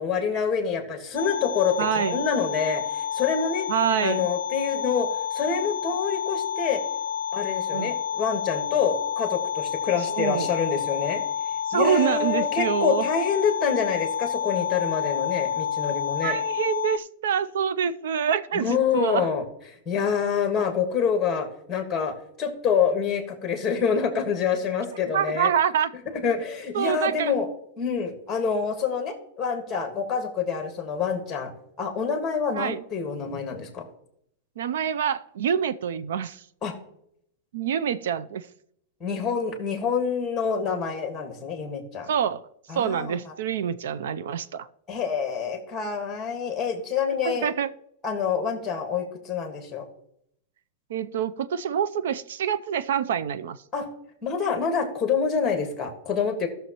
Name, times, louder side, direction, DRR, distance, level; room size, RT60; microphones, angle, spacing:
voice 1, 0.0-3.7 4.0-6.8 7.3-11.2 11.7-16.4 18.5-19.4 19.8-25.5 26.1-27.5 27.8-31.5 31.8-33.9 36.6-36.7 39.0-42.1 42.7-43.3 44.9-47.5 48.0-49.9 53.7-53.9 54.2-56.5, left 6 dB, 10° left, 5 dB, 1.4 m, -27 dB
sound 1, 1.2-17.0, left 9 dB, 90° left, 0.4 m, -29 dB
voice 2, 1.8-2.3 3.7-4.3 7.7-7.9 10.1-10.5 11.7-13.0 16.2-19.3 25.1-25.9 26.7-27.3 32.5-32.8 34.6-36.4 37.5-38.5 42.1-42.4 42.7-44.7 47.2-47.7 50.9-53.6, right 8 dB, 70° right, 15 dB, 0.4 m, -26 dB
16.0 x 6.4 x 3.0 m, 0.74 s
supercardioid pair, 175°, 0 cm